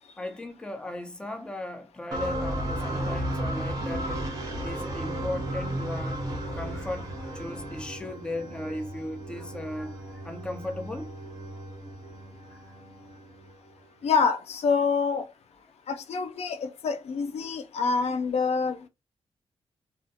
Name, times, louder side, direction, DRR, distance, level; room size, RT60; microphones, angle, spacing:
voice 1, 0.2-4.3 4.6-11.1 12.5-12.7, left 1 dB, 10° left, 0.4 m, -37 dB
sound 1, 2.1-13.9, right 1 dB, 35° right, 0.8 m, -34 dB
voice 2, 14.0-15.3 15.9-18.9, left 5 dB, 75° left, 0.4 m, -26 dB
2.3 x 2.1 x 2.6 m
wide cardioid pair, 165°, 11 cm